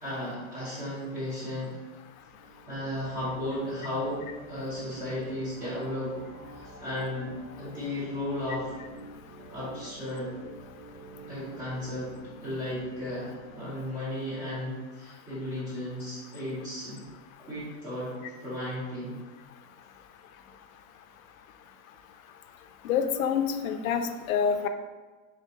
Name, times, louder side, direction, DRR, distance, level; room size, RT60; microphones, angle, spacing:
voice 1, 0.0-1.8 2.7-6.2 6.5-8.7 9.5-10.3 11.3-12.1 12.4-17.1 17.4-18.1 18.4-19.2, left 1 dB, 20° right, -9 dB, 0.8 m, -34 dB
sound 1, 2.2-13.7, right 2 dB, 65° right, 0.9 m, -48 dB
voice 2, 22.8-24.7, left 7 dB, 75° left, 8 dB, 0.5 m, -27 dB
3.6 x 3.4 x 2.8 m, 1.3 s
supercardioid pair, 170°, 42 cm